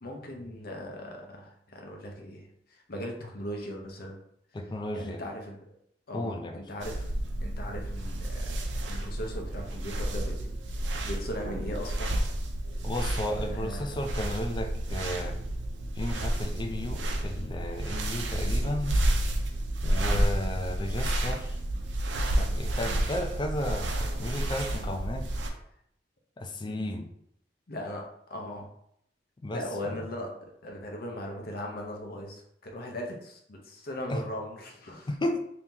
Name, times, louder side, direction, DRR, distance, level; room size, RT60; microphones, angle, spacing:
voice 1, 0.0-4.2 4.9-5.8 6.1-7.1 7.4-12.1 13.4-14.0 24.7-24.9 26.6-26.9 27.7-28.7 29.5-35.1, left 1 dB, 55° left, 1 dB, 0.7 m, -39 dB
voice 2, 4.5-5.2 6.1-6.6 12.8-15.4 15.9-19.0 19.8-21.6 22.3-25.3 26.4-27.1 29.4-29.9 34.1-34.2 35.1-35.4, left 1 dB, 25° left, 5 dB, 0.4 m, -33 dB
sound 1, 6.8-25.5, right 1 dB, 80° right, 0.5 m, -30 dB
2.8 x 2.8 x 3.6 m, 0.72 s
head